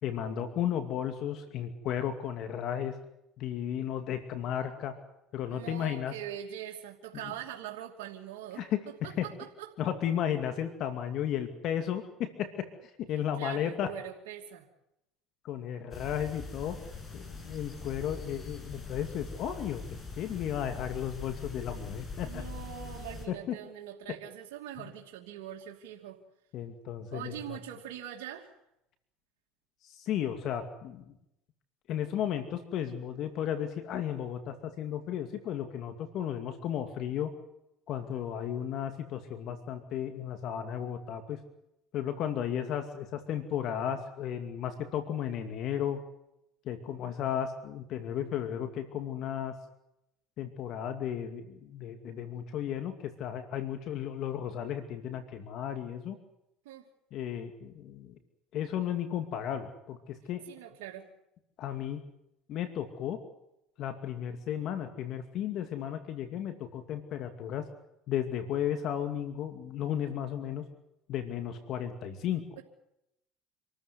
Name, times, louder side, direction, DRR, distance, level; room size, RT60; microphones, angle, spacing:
voice 1, 0.0-2.9 3.4-5.0 5.3-6.1 8.6-8.8 9.2-9.3 9.8-12.7 13.1-13.9 15.4-16.8 17.1-19.8 20.2-22.4 23.3-23.6 26.5-27.6 29.8-31.1 31.9-37.3 37.9-41.4 41.9-46.0 46.6-49.5 50.4-56.2 57.1-58.2 58.5-60.4 61.6-62.0 62.5-63.2 63.8-67.7 68.1-70.6 71.1-72.4, left 9 dB, 60° left, 8 dB, 2.5 m, -34 dB
voice 2, 5.5-9.8 13.4-14.7 22.2-26.2 27.1-28.6 56.6-56.9 60.5-61.1, right 10 dB, 85° right, -1 dB, 2.7 m, -43 dB
sound 1, 15.9-23.3, left 3 dB, 30° left, 8.0 m, -42 dB
27.0 x 14.0 x 9.7 m, 0.83 s
supercardioid pair, 90°, 0 cm